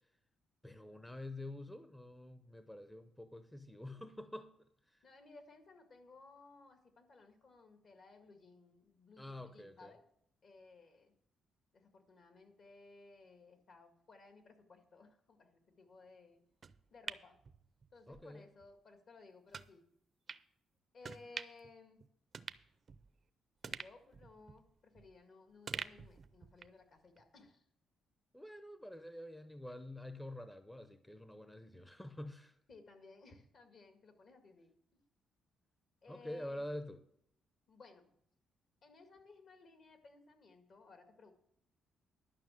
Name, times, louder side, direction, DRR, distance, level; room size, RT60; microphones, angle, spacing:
voice 1, 0.6-4.5 4.9-5.0 9.2-9.9 18.1-18.5 28.3-32.6 36.1-37.0, left 1 dB, 10° left, 9 dB, 0.7 m, -47 dB
voice 2, 5.0-10.0 10.4-11.2 11.7-16.4 16.9-17.4 17.9-19.8 20.9-22.0 23.6-27.6 32.7-34.7 36.0-36.7 37.7-38.1 38.8-41.3, left 3 dB, 55° left, 6 dB, 1.9 m, -59 dB
sound 1, 16.6-18.2 18.6-18.7 19.5-19.7 20.3-20.4 21.0-21.7 22.0-22.1 22.3-23.2 23.6-25.2 25.7-26.8 27.2-27.3, right 5 dB, 40° right, 0.5 m, -47 dB
11.5 x 5.8 x 7.6 m, 0.71 s
cardioid pair, 90°, 0 cm